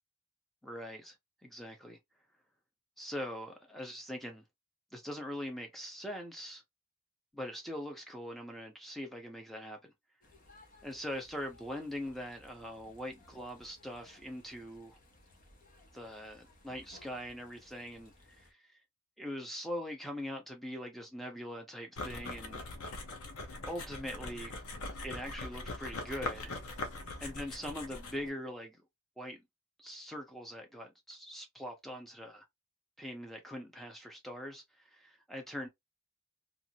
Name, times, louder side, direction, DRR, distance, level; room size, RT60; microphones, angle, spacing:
voice 1, 0.6-1.1 1.4-2.0 3.0-4.4 4.9-6.6 7.3-9.9 10.8-15.0 15.9-18.7 19.2-22.6 23.6-24.6 25.0-26.5 27.2-28.8 29.2-29.4 29.8-32.4 33.0-35.7, equal, ahead, 0.7 m, -42 dB
sound 1, 10.2-18.5, left 2 dB, 40° left, 0.8 m, -61 dB
sound 2, 22.0-28.3, left 2 dB, 85° left, 0.7 m, -41 dB
2.6 x 2.5 x 2.8 m
head